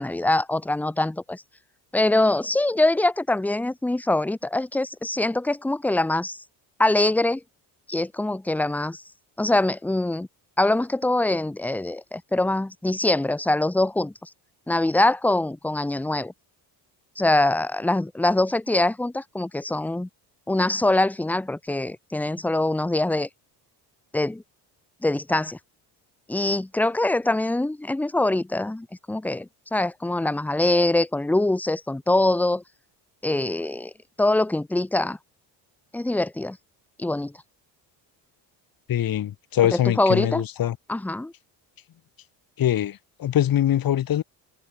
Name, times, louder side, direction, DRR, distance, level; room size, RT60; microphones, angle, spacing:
voice 1, 0.0-1.4 1.9-6.4 6.8-7.4 7.9-9.0 9.4-10.3 10.6-14.1 14.7-16.3 17.2-20.1 20.5-23.3 24.1-24.4 25.0-25.6 26.3-32.6 33.2-33.9 34.2-35.2 35.9-36.6 37.0-37.3 39.7-40.4 40.9-41.3, left 2 dB, 5° left, 0.5 m, -23 dB
voice 2, 38.9-40.8 42.6-44.2, left 11 dB, 50° left, 1.9 m, -23 dB
cardioid pair, 95°, 44 cm